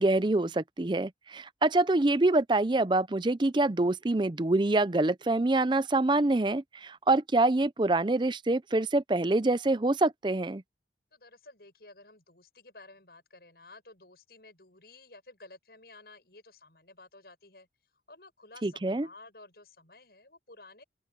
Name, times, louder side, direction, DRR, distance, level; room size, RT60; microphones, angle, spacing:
voice 1, 0.0-10.6 18.6-19.1, right 2 dB, 25° right, 0.5 m, -26 dB
voice 2, 11.1-17.7 18.1-20.8, left 2 dB, 60° left, 7.9 m, -53 dB
open air
head